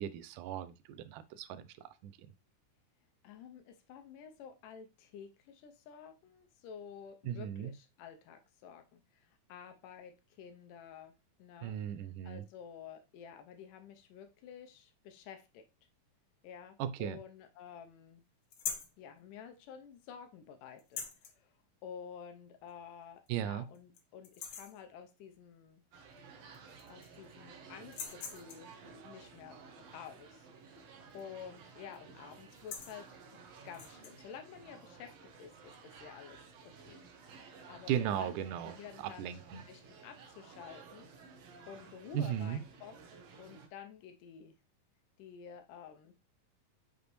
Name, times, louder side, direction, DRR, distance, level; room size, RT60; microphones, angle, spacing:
voice 1, 0.0-2.1 7.3-7.7 11.6-12.4 16.8-17.2 23.3-23.7 37.9-39.6 42.1-42.6, right 10 dB, 85° right, 2.1 m, -37 dB
voice 2, 3.2-11.1 11.4-15.6 16.4-18.2 19.0-21.5 21.8-25.8 26.9-28.7 29.0-33.1 33.7-38.3 38.6-39.2 39.5-41.1 41.7-43.0 43.4-44.6 45.2-46.1, left 7 dB, 85° left, 2.3 m, -51 dB
sound 1, 18.5-19.0 20.8-21.3 22.7-22.8 23.3-23.4 23.7-24.0 24.2-24.8 26.2-26.3 26.5-27.2 27.8-28.7 31.1-31.4 31.7-32.0 32.4-33.0 33.7-34.1, left 7 dB, 65° left, 1.8 m, -43 dB
sound 2, 25.9-43.7, right 5 dB, 65° right, 1.9 m, -54 dB
6.6 x 5.2 x 3.0 m
omnidirectional pair, 3.7 m